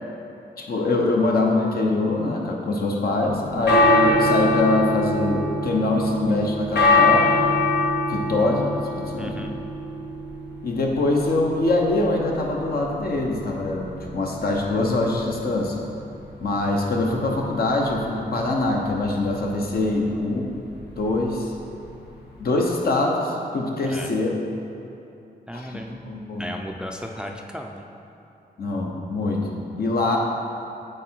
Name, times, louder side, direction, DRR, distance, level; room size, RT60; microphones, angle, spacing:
voice 1, 0.6-7.3 8.1-9.5 10.6-15.8 16.4-20.5 21.0-21.5 22.4-24.3 25.5-26.5 28.6-30.2, left 2 dB, 65° left, 0 dB, 0.9 m, -23 dB
sound 1, 3.3-22.4, left 2 dB, 85° left, 1.3 m, -25 dB
voice 2, 9.2-9.6 20.0-20.2 23.8-24.1 25.5-27.9, equal, 5° right, 2 dB, 0.4 m, -36 dB
7.7 x 3.8 x 4.5 m, 2.8 s
cardioid pair, 85°, 17 cm